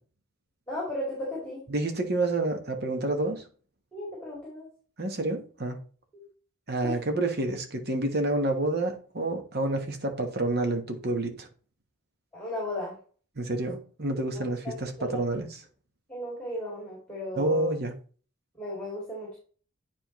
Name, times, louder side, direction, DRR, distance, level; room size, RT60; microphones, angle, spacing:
voice 1, 0.7-1.6 3.9-4.7 6.1-6.3 6.8-7.0 12.3-13.0 14.3-15.2 16.1-17.7 18.6-19.4, left 1 dB, 5° left, 2.5 m, -35 dB
voice 2, 1.7-3.4 5.0-5.8 6.7-11.5 13.4-15.6 17.4-17.9, right 2 dB, 50° right, 1.2 m, -29 dB
9.6 x 4.4 x 3.1 m
head